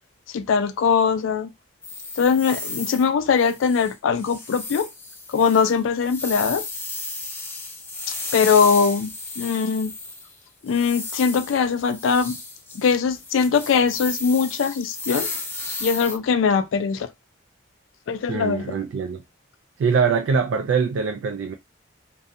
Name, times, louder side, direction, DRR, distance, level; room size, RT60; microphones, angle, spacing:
voice 1, 0.3-1.5 2.2-4.9 5.3-6.6 8.3-9.9 10.6-12.4 12.7-15.3 15.8-17.1 18.1-18.7, left 6 dB, 80° left, 0.3 m, -21 dB
sound 1, 1.8-3.1 3.3-10.3 10.7-16.2, left 3 dB, 10° left, 0.5 m, -34 dB
voice 2, 18.3-19.2 19.8-21.5, right 5 dB, 85° right, 0.3 m, -23 dB
2.6 x 2.1 x 2.5 m
head